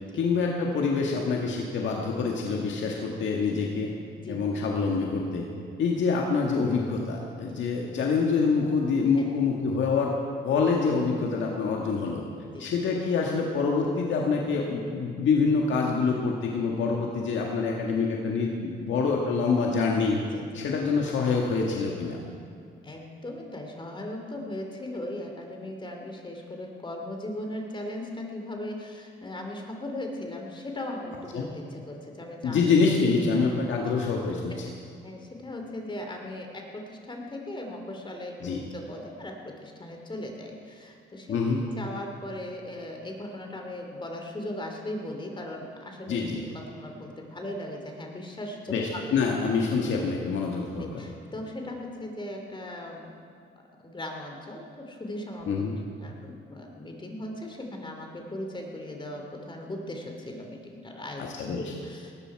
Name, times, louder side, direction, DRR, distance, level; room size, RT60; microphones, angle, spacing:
voice 1, 0.1-3.9 4.3-5.5 5.8-10.1 10.4-12.2 12.6-20.2 20.5-22.2 31.3-31.5 32.4-34.6 38.4-38.6 41.3-41.6 46.1-46.4 48.7-51.0 55.5-55.8 61.2-61.8, left 4 dB, 70° left, -1 dB, 1.8 m, -26 dB
voice 2, 22.8-32.6 34.5-34.6 35.0-41.4 41.6-46.2 46.5-49.0 50.8-53.2 53.8-55.6 56.0-61.3 61.8-62.1, left 1 dB, 25° left, 2 dB, 2.7 m, -38 dB
18.5 x 14.0 x 4.8 m, 2.4 s
cardioid pair, 90°, 20 cm